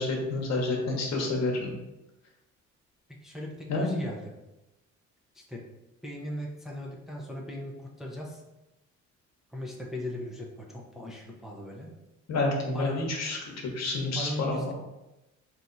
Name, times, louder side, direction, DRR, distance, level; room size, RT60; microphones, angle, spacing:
voice 1, 0.0-1.7 3.7-4.0 12.3-14.7, left 2 dB, 60° left, 0 dB, 1.1 m, -29 dB
voice 2, 3.2-4.3 5.3-5.7 6.0-8.4 9.5-11.9 12.7-13.1 14.1-14.7, left 1 dB, ahead, -2 dB, 0.7 m, -38 dB
3.4 x 2.9 x 4.0 m, 0.97 s
cardioid pair, 90°, 30 cm